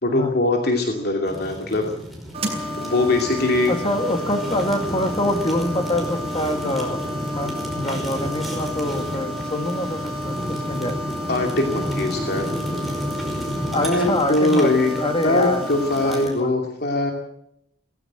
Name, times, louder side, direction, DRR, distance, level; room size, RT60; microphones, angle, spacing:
voice 1, 0.0-1.9 2.8-3.7 11.3-12.5 13.7-17.1, left 2 dB, 60° left, 2 dB, 2.7 m, -21 dB
Fire, 1.2-16.4, equal, ahead, 5.2 m, -32 dB
sound 1, 2.3-16.2, equal, 30° right, 7.8 m, -31 dB
voice 2, 3.7-7.0 7.3-11.0 13.7-15.6 16.0-16.5, left 1 dB, 30° left, 5 dB, 2.3 m, -25 dB
19.0 x 16.0 x 9.1 m, 0.73 s
head